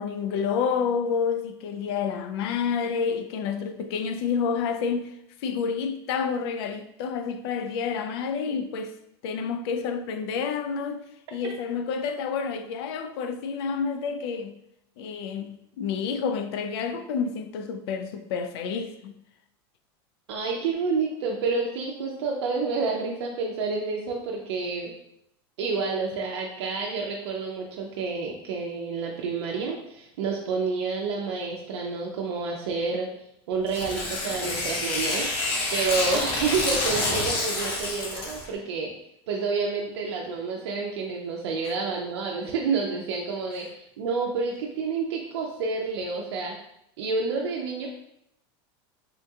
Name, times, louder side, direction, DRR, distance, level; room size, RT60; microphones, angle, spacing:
voice 1, 0.0-5.1 5.4-8.9 9.2-11.0 11.3-14.5 15.0-19.1 41.6-41.7, left 6 dB, 70° left, 0.4 m, -29 dB
voice 2, 20.3-24.9 25.6-33.1 33.5-35.3 35.7-38.9 39.3-46.5 47.0-47.9, right 4 dB, 80° right, 0.5 m, -29 dB
Tearing, 33.7-38.5, left 2 dB, 40° left, 0.9 m, -28 dB
3.6 x 2.3 x 2.7 m
supercardioid pair, 125°, 14 cm